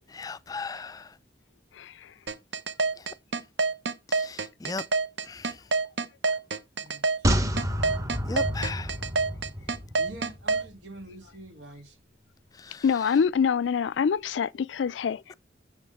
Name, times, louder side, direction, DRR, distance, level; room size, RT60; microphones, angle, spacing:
voice 1, 0.1-1.2 3.0-3.1 4.1-4.8 5.2-5.6 8.2-8.9 12.5-12.8, left 4 dB, 20° left, 0.3 m, -37 dB
voice 2, 1.8-2.1 12.8-15.3, left 6 dB, 85° left, 0.4 m, -25 dB
sound 1, 2.3-10.6, right 3 dB, 70° right, 0.9 m, -26 dB
voice 3, 6.7-7.4 9.4-9.5 10.0-12.0, right 1 dB, 85° right, 3.2 m, -46 dB
sound 2, 7.2-10.7 11.0-11.1, equal, 20° right, 1.1 m, -29 dB
7.7 x 7.1 x 3.5 m
head